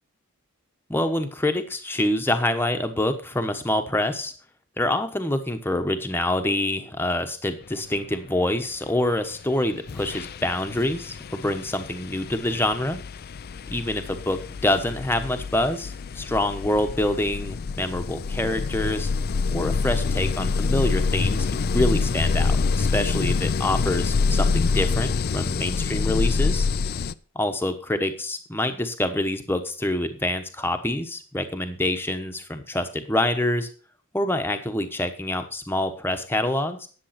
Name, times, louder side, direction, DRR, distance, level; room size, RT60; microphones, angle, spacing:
voice 1, 0.9-4.3 4.8-13.0 13.7-19.1 19.5-26.7 27.3-33.7 34.1-36.9, left 1 dB, 10° left, 7 dB, 1.1 m, -26 dB
sound 1, 9.3-9.5 9.9-27.1, left 4 dB, 45° left, 0.4 m, -26 dB
10.5 x 7.7 x 5.8 m, 0.39 s
head